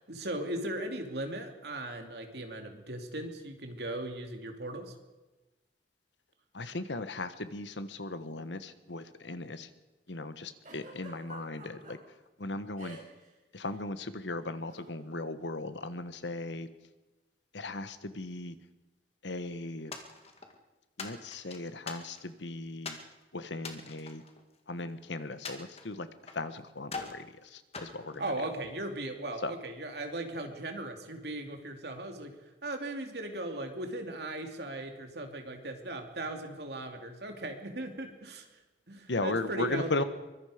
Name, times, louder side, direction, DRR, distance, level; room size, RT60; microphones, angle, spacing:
voice 1, 0.1-4.9 28.2-32.4 32.6-38.5 38.9-40.1, right 1 dB, 65° right, 4 dB, 2.8 m, -38 dB
voice 2, 6.5-9.7 10.1-12.0 12.4-13.0 13.5-16.7 17.5-18.5 19.2-19.9 21.0-23.0 23.3-24.2 24.7-26.1 26.3-28.2 29.4-29.5 39.1-40.0, left 2 dB, 85° left, 11 dB, 1.3 m, -37 dB
Giggle, 10.6-11.9 12.8-13.3 13.5-13.8 14.7-14.9, right 2 dB, 45° right, 6.6 m, -49 dB
sound 1, 19.9-20.6 21.0-22.4 22.8-23.1 23.6-24.9 25.4-26.5 26.8-27.2 27.7-28.8, left 4 dB, 35° left, 2.0 m, -43 dB
23.5 x 22.0 x 5.1 m, 1.1 s
head